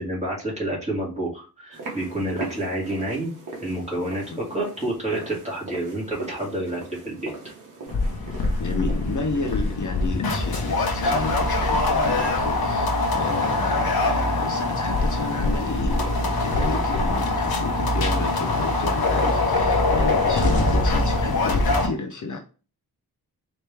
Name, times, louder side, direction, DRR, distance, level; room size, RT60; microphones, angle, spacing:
voice 1, 0.0-3.3 3.6-4.2 4.5-7.3, right 1 dB, 20° right, -5 dB, 2.4 m, -29 dB
sound 1, 1.7-17.4, right 3 dB, 55° right, 1.5 m, -41 dB
sound 2, 7.9-21.9, left 2 dB, 70° left, 1.1 m, -23 dB
voice 2, 8.6-22.4, left 4 dB, 50° left, 4 dB, 0.6 m, -32 dB
4.3 x 3.2 x 3.4 m, 0.35 s
wide cardioid pair, 125°, 38 cm